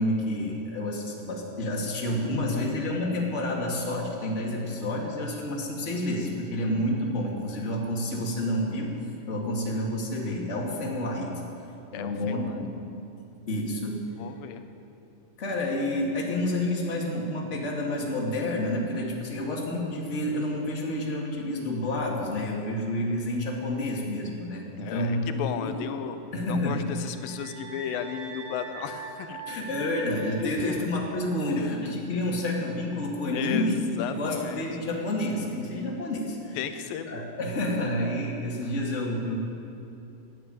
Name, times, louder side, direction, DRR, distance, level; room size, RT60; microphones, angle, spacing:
voice 1, 0.0-8.9 9.3-11.4 11.9-12.7 13.5-14.1 15.4-25.8 26.3-26.9 29.5-36.6 37.1-39.4, left 1 dB, 25° left, -2 dB, 2.0 m, -29 dB
voice 2, 11.9-12.6 14.2-14.6 24.8-26.2 26.4-29.4 30.4-30.9 31.5-31.7 33.3-34.6 36.6-37.2 38.6-38.7, left 9 dB, 80° left, 9 dB, 2.6 m, -35 dB
sound 1, 26.6-30.9, right 3 dB, 65° right, 3.6 m, -43 dB
13.0 x 11.0 x 9.1 m, 2.7 s
omnidirectional pair, 4.0 m